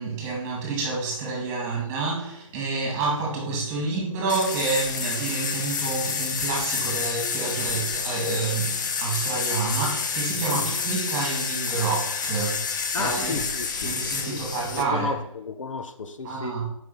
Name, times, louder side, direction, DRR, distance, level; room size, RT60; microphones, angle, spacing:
voice 1, 0.0-13.4 13.8-15.2 16.2-16.6, right 3 dB, 15° right, 2.0 m, -28 dB
sound 1, 4.3-14.8, left 5 dB, 35° left, 0.8 m, -29 dB
voice 2, 12.9-14.0 14.2-14.4 14.8-16.6, left 4 dB, 65° left, 0.8 m, -33 dB
7.2 x 5.4 x 4.2 m
hypercardioid pair, 155°, 18 cm